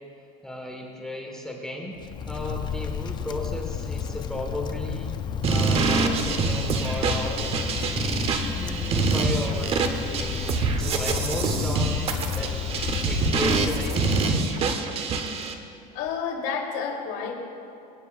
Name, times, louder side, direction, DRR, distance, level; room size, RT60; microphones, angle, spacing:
voice 1, 0.4-1.9 2.2-5.2 5.5-7.5 8.6-12.5 12.8-14.5, left 1 dB, 5° left, -1 dB, 1.5 m, -34 dB
Wind, 2.0-14.8, left 7 dB, 25° left, 0.4 m, -32 dB
sound 1, 5.4-15.5, right 4 dB, 30° right, 1.0 m, -26 dB
voice 2, 15.9-17.3, left 6 dB, 60° left, -1 dB, 3.3 m, -30 dB
26.0 x 9.8 x 2.5 m, 2.8 s
supercardioid pair, 140°, 19 cm